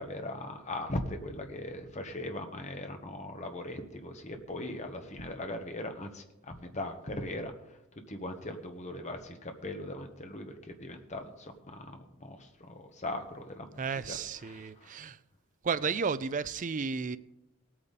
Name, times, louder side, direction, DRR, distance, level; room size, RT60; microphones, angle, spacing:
voice 1, 0.0-7.5 8.1-13.8 14.1-14.2 14.5-15.0, left 1 dB, 35° left, 1.3 m, -39 dB
voice 2, 13.8-15.2 15.6-17.2, right 5 dB, 40° right, 0.4 m, -33 dB
18.0 x 8.7 x 4.1 m
head